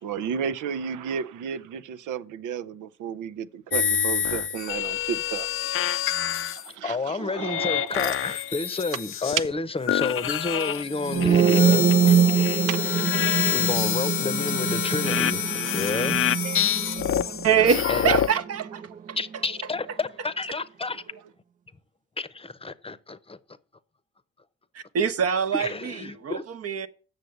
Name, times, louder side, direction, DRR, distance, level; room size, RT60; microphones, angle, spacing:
voice 1, 0.0-5.5 6.3-8.0 12.5-12.8 13.4-13.5 16.4-16.6 17.2-17.3, right 7 dB, 85° right, 0.7 m, -33 dB
sound 1, 3.7-6.7 7.4-9.6 9.9-18.4, left 9 dB, 45° left, 0.5 m, -27 dB
voice 2, 6.8-12.2 13.4-15.4 15.7-16.2 17.9-18.2 19.1-21.0 22.2-23.4 25.5-26.4, left 3 dB, 20° left, 0.8 m, -30 dB
sound 2, 11.0-18.9, right 8 dB, 25° right, 0.4 m, -24 dB
voice 3, 17.4-18.8 19.1-19.2 24.7-25.9 26.2-26.9, right 7 dB, 55° right, 1.0 m, -24 dB
8.1 x 6.6 x 7.8 m
cardioid pair, 90°, 30 cm